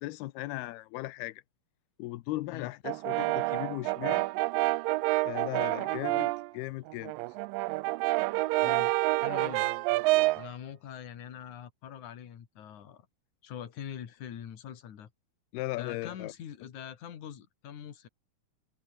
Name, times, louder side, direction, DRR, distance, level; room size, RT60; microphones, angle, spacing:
voice 1, 0.0-1.4 2.0-4.2 5.3-7.2 15.5-16.3, left 18 dB, 90° left, 2.8 m, -37 dB
Brass instrument, 2.8-6.5 6.9-10.5, right 21 dB, 80° right, 2.1 m, -28 dB
voice 2, 8.6-8.9 9.2-9.7 10.3-13.1 13.4-15.1 15.7-18.1, left 9 dB, 55° left, 3.4 m, -43 dB
omnidirectional pair, 4.4 m